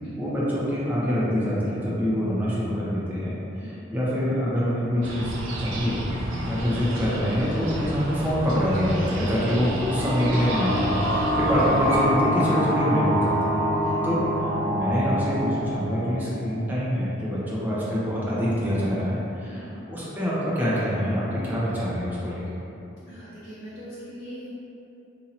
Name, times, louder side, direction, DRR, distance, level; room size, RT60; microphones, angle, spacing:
voice 1, 0.1-3.4 3.9-6.0 6.5-13.5 14.0-22.4, equal, 10° right, -9 dB, 0.7 m, -25 dB
sound 1, 5.0-12.0, right 1 dB, 90° right, 0.5 m, -33 dB
sound 2, 9.5-16.9, equal, 65° right, 1.1 m, -25 dB
voice 2, 23.1-24.5, right 1 dB, 50° left, -12 dB, 0.8 m, -41 dB
2.8 x 2.7 x 4.2 m, 2.9 s
head